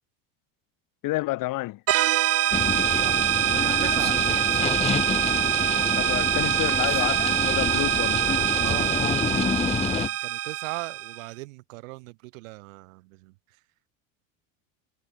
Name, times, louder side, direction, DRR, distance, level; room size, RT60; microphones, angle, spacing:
voice 1, 1.0-1.8 5.9-9.2 9.9-10.1, left 19 dB, 55° left, 3.2 m, -31 dB
sound 1, 1.9-11.3, right 13 dB, 35° right, 1.0 m, -24 dB
sound 2, 2.5-10.1, left 6 dB, 15° left, 0.7 m, -28 dB
voice 2, 2.9-4.5 8.5-13.6, right 23 dB, 80° right, 3.4 m, -39 dB
supercardioid pair, 110°, 39 cm